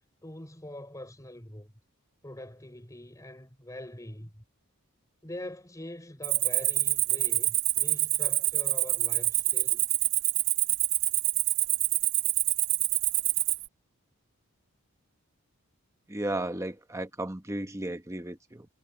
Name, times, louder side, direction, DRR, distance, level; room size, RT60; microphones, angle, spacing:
voice 1, 0.2-1.7 2.2-4.4 5.2-9.8, left 1 dB, 15° left, 4.3 m, -44 dB
Cricket, 6.2-13.7, right 17 dB, 55° right, 0.5 m, -26 dB
voice 2, 16.1-18.7, right 1 dB, 15° right, 1.0 m, -34 dB
head